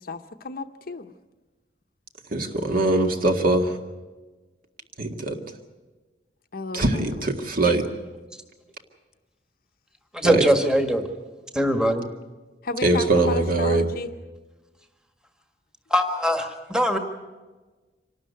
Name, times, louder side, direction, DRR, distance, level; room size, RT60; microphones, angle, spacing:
voice 1, 0.0-1.1 6.5-7.0 12.6-14.1, left 3 dB, 60° left, 5 dB, 0.8 m, -33 dB
voice 2, 2.3-3.8 5.0-5.4 6.7-7.9 10.2-10.5 12.8-13.9, right 2 dB, 55° right, 5 dB, 2.0 m, -22 dB
voice 3, 10.1-11.1 11.5-12.1 15.9-17.0, equal, 5° right, 5 dB, 1.6 m, -21 dB
26.0 x 12.5 x 9.5 m, 1.3 s
head